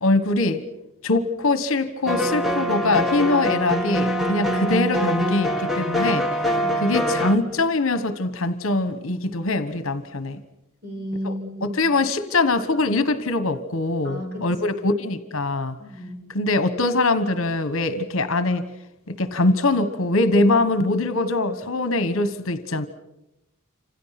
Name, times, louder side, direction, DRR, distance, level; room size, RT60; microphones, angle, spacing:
voice 1, 0.0-0.6 1.0-6.3 6.8-10.4 11.2-11.3 11.7-15.8 16.3-18.6 19.1-22.9, left 2 dB, 65° left, 1.3 m, -22 dB
sound 1, 2.1-7.4, equal, ahead, 1.6 m, -24 dB
voice 2, 6.5-6.9 10.8-11.8 14.0-14.4 15.8-16.2, equal, 45° right, 6.6 m, -33 dB
29.0 x 27.0 x 6.0 m
head